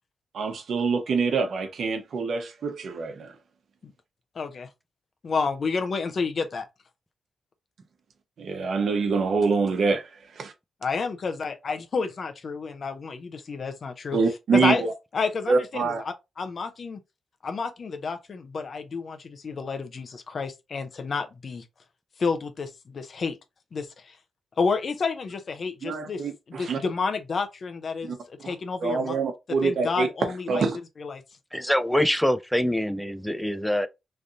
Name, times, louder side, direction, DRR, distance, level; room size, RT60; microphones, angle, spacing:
voice 1, 0.3-3.4 8.4-10.5 14.1-14.9 15.5-16.0 25.8-26.8 28.0-28.2 28.4-28.5 28.8-30.1 30.5-30.8, right 4 dB, 75° right, 0.9 m, -25 dB
voice 2, 4.3-4.7 5.2-6.6 10.8-14.2 14.5-14.8 15.1-15.9 16.4-17.0 17.4-21.6 22.2-23.4 23.7-24.2 24.6-26.2 26.5-29.1 29.6-30.6 31.0-31.2, left 4 dB, 55° left, 0.8 m, -30 dB
voice 3, 31.5-33.9, left 1 dB, 5° left, 0.5 m, -24 dB
3.3 x 2.6 x 3.8 m
cardioid pair, 75°, 0 cm